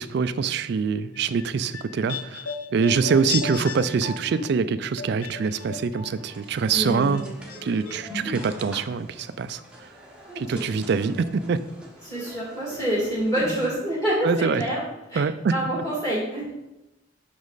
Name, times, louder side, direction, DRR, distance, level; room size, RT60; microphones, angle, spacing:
voice 1, 0.0-2.4 2.7-7.2 7.6-9.6 10.4-11.6 14.2-14.6 15.2-15.5, right 5 dB, 55° right, 13 dB, 0.3 m, -24 dB
sound 1, 1.1-6.4 6.7-7.6 7.9-8.0, left 5 dB, 85° left, 0.8 m, -35 dB
voice 2, 3.0-3.3 6.7-7.2 10.3-10.6 12.0-14.8 15.1-15.2 15.5-16.5, right 1 dB, 15° left, -7 dB, 2.2 m, -27 dB
sound 2, 6.1-13.7, equal, 5° right, 0.9 m, -41 dB
6.2 x 5.1 x 3.9 m, 0.96 s
head